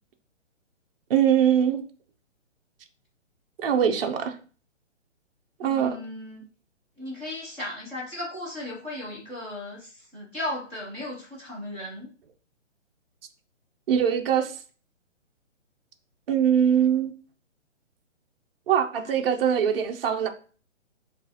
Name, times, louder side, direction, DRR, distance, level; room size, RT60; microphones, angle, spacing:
voice 1, 1.1-1.8 3.6-4.3 5.6-6.0 13.9-14.5 16.3-17.1 18.7-20.3, right 8 dB, 50° right, 0.5 m, -22 dB
voice 2, 5.6-6.4 7.0-12.1 19.0-19.6, left 1 dB, 5° left, 0.5 m, -36 dB
6.2 x 2.4 x 2.7 m
hypercardioid pair, 155°, 38 cm